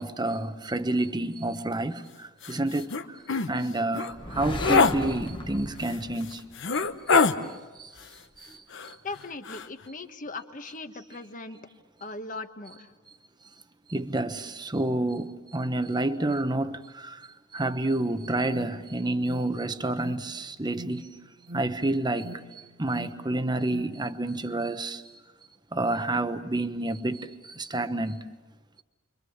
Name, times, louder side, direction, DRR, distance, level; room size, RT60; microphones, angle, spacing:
voice 1, 0.0-2.0 2.5-2.9 3.5-6.4 13.9-17.2 17.5-21.0 21.5-22.3 22.8-25.0 25.7-27.3 27.6-28.2, right 2 dB, 20° right, 1.0 m, -29 dB
sound 1, 2.4-2.5 2.9-3.0 3.3-3.5 3.9-4.1 4.6-5.0 5.9-6.0 6.6-7.4 8.7-9.2 9.5-9.7, left 4 dB, 65° left, 1.0 m, -23 dB
sound 2, 4.1-7.0, left 1 dB, 25° left, 1.3 m, -36 dB
voice 2, 9.0-11.6 12.0-12.9, left 3 dB, 40° left, 1.4 m, -39 dB
Alarm, 18.4-24.1, right 1 dB, 50° right, 1.4 m, -46 dB
30.0 x 24.0 x 7.2 m
head